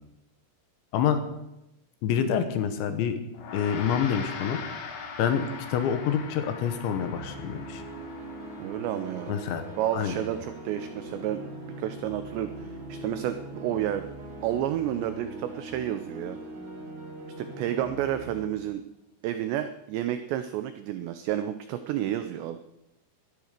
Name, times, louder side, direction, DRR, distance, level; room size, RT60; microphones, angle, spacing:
voice 1, 2.0-3.2 3.5-4.6 5.2-7.8 9.3-9.6 9.9-10.1, left 8 dB, 70° left, 8 dB, 3.3 m, -27 dB
Gong, 3.3-12.9, left 5 dB, 90° left, 5.0 m, -42 dB
sound 1, 6.5-18.5, right 1 dB, 70° right, 6.1 m, -41 dB
voice 2, 8.6-9.4 9.8-11.4 11.8-14.1 14.4-16.4 17.4-18.8 19.2-22.6, right 11 dB, 90° right, 10 dB, 2.4 m, -30 dB
14.5 x 12.5 x 6.6 m, 0.91 s
omnidirectional pair, 5.9 m